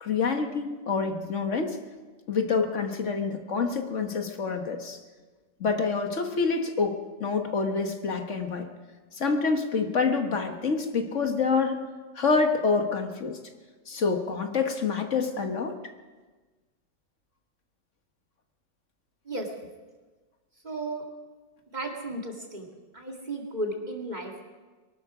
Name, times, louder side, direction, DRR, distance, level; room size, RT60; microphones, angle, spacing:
voice 1, 0.0-1.8 2.3-5.0 5.6-8.7 9.2-11.8 12.1-13.4 13.9-15.7, left 4 dB, 65° left, 5 dB, 1.7 m, -27 dB
voice 2, 20.6-21.0 21.7-22.7 22.9-24.4, right 1 dB, 35° right, 1 dB, 2.3 m, -34 dB
23.0 x 12.5 x 4.9 m, 1.3 s
omnidirectional pair, 1.4 m